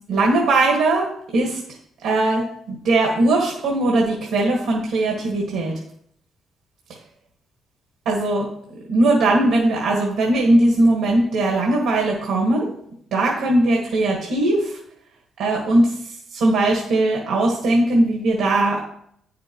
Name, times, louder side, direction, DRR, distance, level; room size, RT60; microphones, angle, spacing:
voice 1, 0.1-1.0 1.3-1.6 2.0-5.7 8.0-8.4 8.9-12.7 13.1-14.8 15.4-15.9 16.3-18.8, right 2 dB, 90° right, -2 dB, 1.6 m, -19 dB
9.2 x 6.0 x 3.1 m, 0.69 s
cardioid pair, 90°, 0 cm